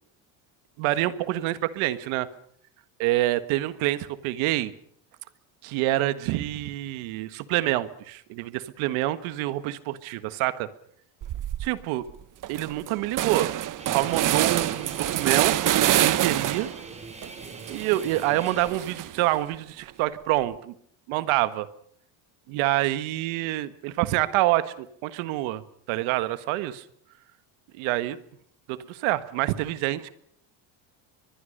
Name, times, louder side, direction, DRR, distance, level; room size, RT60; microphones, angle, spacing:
voice 1, 0.8-2.3 3.0-4.7 5.6-10.7 11.6-12.1 12.5-13.5 13.9-16.7 17.7-20.7 21.1-21.7 22.5-25.6 25.9-26.8 27.7-28.2 28.7-30.1, right 16 dB, 80° right, 13 dB, 1.6 m, -27 dB
sound 1, 11.2-11.7 12.1-12.2 12.4-16.8 17.2-19.3, right 13 dB, 40° right, 0.8 m, -26 dB
Guitar, 13.8-18.7, right 2 dB, 15° right, 4.7 m, -43 dB
23.5 x 21.5 x 6.6 m, 0.66 s
supercardioid pair, 105°, 48 cm